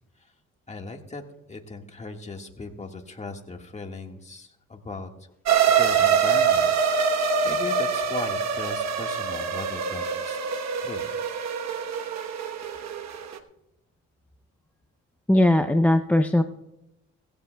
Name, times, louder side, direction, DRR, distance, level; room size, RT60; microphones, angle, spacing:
voice 1, 0.7-1.2 1.5-5.3 5.7-6.7 7.0-10.4 10.8-11.0, left 3 dB, 25° left, 3 dB, 1.7 m, -38 dB
sound 1, 5.5-13.4, right 6 dB, 60° right, 1.1 m, -24 dB
voice 2, 15.3-16.4, left 1 dB, 5° left, 8 dB, 0.6 m, -19 dB
18.0 x 16.0 x 2.3 m, 0.87 s
cardioid pair, 90°, 30 cm